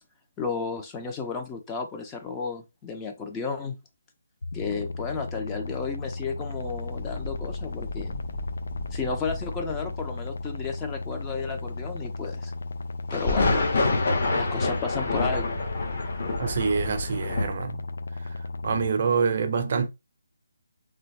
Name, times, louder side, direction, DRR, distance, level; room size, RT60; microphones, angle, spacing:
voice 1, 0.4-3.8 4.5-8.2 8.9-12.5 13.1-13.6 14.3-15.5, left 5 dB, 15° left, 0.5 m, -33 dB
sound 1, 4.4-18.9, left 3 dB, 75° left, 0.4 m, -35 dB
sound 2, 6.5-10.7 11.2-11.3 12.2-12.3 12.7-12.8 13.1-17.5, left 2 dB, 45° left, 1.3 m, -29 dB
voice 2, 16.4-17.8 18.6-19.9, right 5 dB, 45° right, 0.5 m, -26 dB
3.3 x 2.2 x 3.1 m
hypercardioid pair, 160°, 0 cm